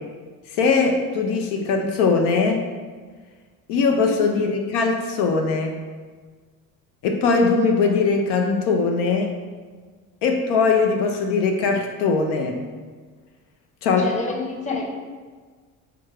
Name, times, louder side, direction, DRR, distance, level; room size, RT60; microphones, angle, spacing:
voice 1, 0.5-2.7 3.7-5.8 7.0-9.3 10.2-12.6 13.8-14.1, left 4 dB, 75° left, 3 dB, 0.5 m, -20 dB
voice 2, 14.0-14.9, left 3 dB, 20° left, 0 dB, 0.7 m, -29 dB
3.4 x 2.3 x 3.1 m, 1.5 s
hypercardioid pair, 60°, 41 cm